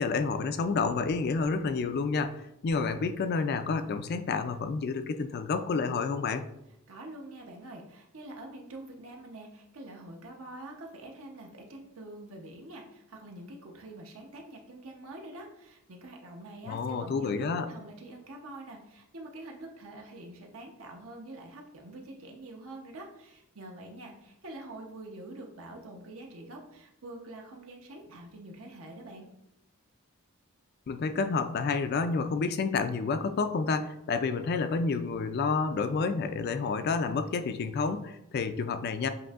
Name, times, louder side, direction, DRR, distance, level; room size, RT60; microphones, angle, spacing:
voice 1, 0.0-6.4 16.7-17.7 30.9-39.1, left 4 dB, 45° left, 9 dB, 0.3 m, -29 dB
voice 2, 6.9-29.3, right 1 dB, 70° right, 1 dB, 0.8 m, -45 dB
7.5 x 2.6 x 2.4 m, 0.83 s
head